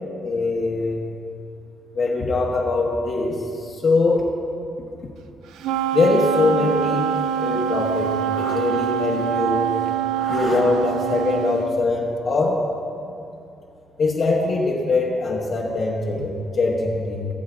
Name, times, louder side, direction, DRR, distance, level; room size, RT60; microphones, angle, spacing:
voice 1, 0.2-1.0 1.9-4.3 5.9-7.1 7.4-9.7 10.1-12.7 14.0-17.3, left 3 dB, 55° left, -3 dB, 1.1 m, -22 dB
Wind instrument woodwind instrument, 5.6-11.7, right 9 dB, 90° right, 0.4 m, -24 dB
18.0 x 7.5 x 2.5 m, 2.6 s
cardioid pair, 95°, 0 cm